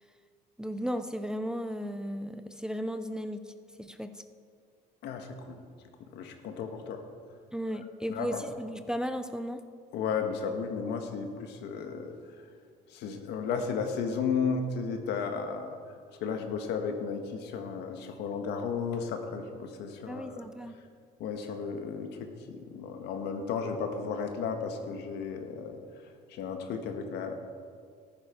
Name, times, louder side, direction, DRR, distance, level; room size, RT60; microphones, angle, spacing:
voice 1, 0.6-4.2 7.5-9.6 20.1-20.8, equal, 5° right, 9 dB, 0.5 m, -35 dB
voice 2, 5.0-5.6 6.1-7.0 8.1-8.5 9.9-12.1 12.9-15.8 16.2-20.4 21.2-22.2 22.5-25.8 26.3-27.3, left 5 dB, 80° left, 5 dB, 1.5 m, -34 dB
13.5 x 11.0 x 4.5 m, 2.1 s
cardioid pair, 110°, 17 cm